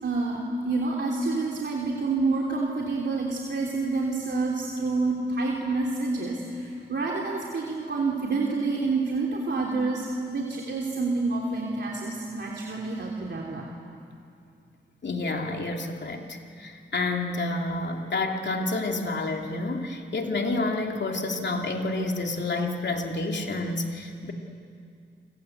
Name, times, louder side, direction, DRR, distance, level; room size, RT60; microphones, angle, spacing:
voice 1, 0.0-13.6, right 3 dB, 65° right, -2 dB, 3.2 m, -28 dB
voice 2, 15.0-24.3, left 2 dB, 65° left, 2 dB, 2.9 m, -29 dB
29.0 x 24.5 x 8.1 m, 2.5 s
cardioid pair, 70°, 20 cm